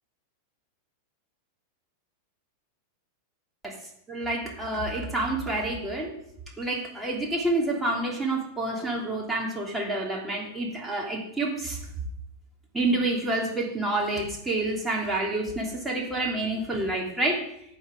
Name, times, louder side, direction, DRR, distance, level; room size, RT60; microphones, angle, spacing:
voice 1, 4.1-6.1 6.6-11.8 12.7-17.4, right 2 dB, 5° right, -2 dB, 3.2 m, -28 dB
14.5 x 10.0 x 3.9 m, 0.72 s
figure-of-eight pair, 90°, 0 cm